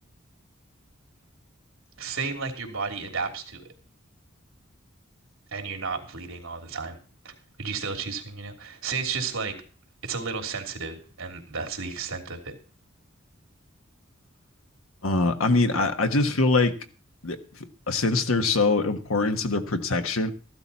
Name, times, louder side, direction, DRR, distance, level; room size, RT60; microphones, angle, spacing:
voice 1, 2.0-3.7 5.5-7.0 7.2-7.3 7.6-9.5 10.0-12.6, right 5 dB, 75° right, 3.3 m, -32 dB
voice 2, 15.0-16.8 17.2-17.4 17.9-20.3, left 3 dB, 85° left, 1.4 m, -23 dB
14.5 x 12.0 x 4.2 m
head